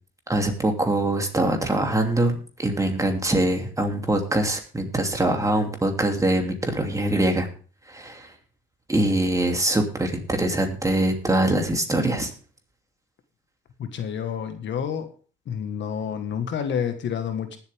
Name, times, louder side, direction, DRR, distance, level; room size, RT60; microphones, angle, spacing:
voice 1, 0.3-7.5 7.9-8.3 8.9-12.3, right 1 dB, 15° right, 3 dB, 2.8 m, -23 dB
voice 2, 13.8-15.1 15.4-17.6, left 8 dB, 65° left, 8 dB, 1.7 m, -29 dB
19.5 x 7.9 x 3.6 m, 0.39 s
cardioid pair, 90°, 20 cm